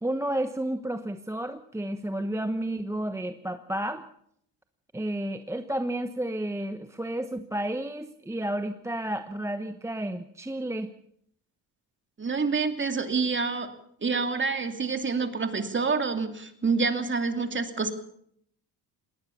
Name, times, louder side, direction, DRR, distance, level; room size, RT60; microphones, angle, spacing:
voice 1, 0.0-4.1 4.9-10.9, right 1 dB, 5° right, 8 dB, 1.1 m, -31 dB
voice 2, 12.2-13.7 14.0-17.9, right 4 dB, 30° right, 7 dB, 2.8 m, -27 dB
20.0 x 19.0 x 7.0 m, 0.68 s
cardioid pair, 100°, 41 cm